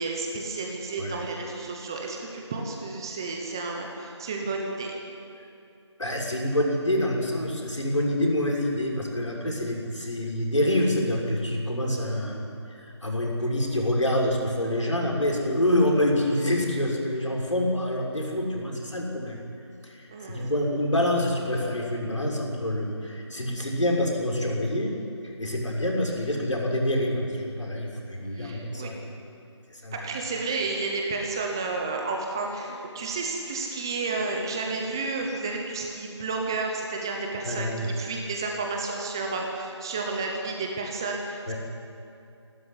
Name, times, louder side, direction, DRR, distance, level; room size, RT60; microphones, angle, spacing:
voice 1, 0.0-4.9 20.1-20.5 28.3-28.9 29.9-41.5, right 3 dB, 10° right, 1 dB, 0.8 m, -31 dB
voice 2, 6.0-19.4 19.8-28.9 29.7-30.0 37.4-37.9 41.5-41.6, left 1 dB, 85° left, 0 dB, 6.6 m, -27 dB
27.0 x 13.0 x 9.7 m, 2.6 s
figure-of-eight pair, 165°, 15 cm